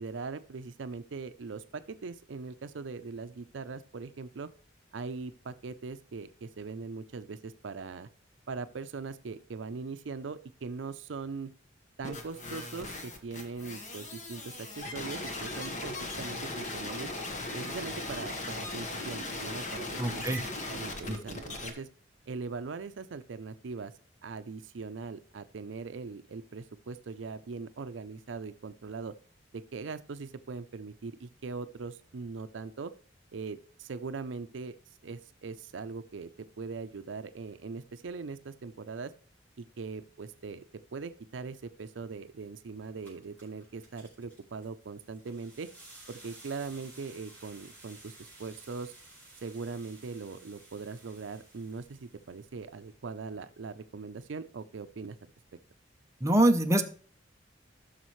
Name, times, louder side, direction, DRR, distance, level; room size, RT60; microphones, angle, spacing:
voice 1, 0.0-4.5 4.9-8.1 8.5-11.5 12.0-17.1 17.5-20.2 20.7-21.9 22.3-23.9 24.2-29.1 29.5-32.9 33.3-34.8 35.0-36.3 36.6-39.1 39.6-40.6 40.9-45.7 46.1-48.9 49.4-55.2, right 4 dB, 75° right, 12 dB, 0.5 m, -40 dB
sound 1, 12.0-21.7, left 2 dB, 40° left, 1.3 m, -38 dB
voice 2, 20.0-20.4 21.1-21.2 56.2-56.8, right 1 dB, 15° right, 5 dB, 0.7 m, -24 dB
sound 2, 43.0-52.9, right 2 dB, 10° left, 4.5 m, -55 dB
15.0 x 6.4 x 3.1 m, 0.43 s
head